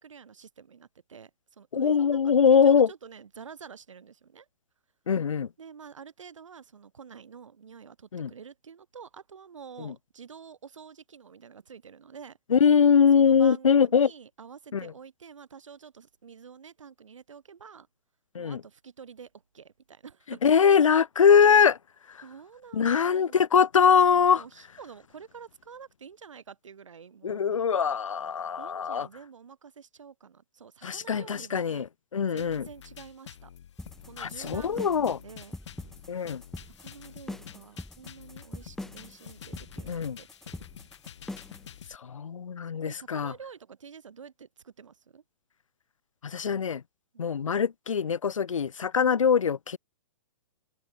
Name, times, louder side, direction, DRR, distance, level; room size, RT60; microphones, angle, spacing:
voice 1, 0.0-4.5 5.6-12.4 13.2-17.9 18.4-20.4 22.2-23.4 24.3-27.7 28.6-31.9 32.3-33.5 34.1-35.6 36.7-40.9 42.8-45.2 47.1-47.4, right 6 dB, 75° right, 2.3 m, -48 dB
voice 2, 1.7-2.9 5.1-5.5 8.1-8.3 9.8-9.9 12.5-14.1 14.7-14.9 18.3-18.6 20.4-21.8 22.7-24.4 27.2-29.1 30.8-31.9 32.1-32.6 34.2-35.2 36.1-36.4 39.9-40.2 42.0-43.3 46.2-46.8 47.2-49.8, left 7 dB, 85° left, 0.5 m, -22 dB
sound 1, 32.4-42.0, left 9 dB, 65° left, 1.3 m, -48 dB
sound 2, 33.8-41.7, left 1 dB, ahead, 0.4 m, -42 dB
open air
hypercardioid pair, 120°, 16 cm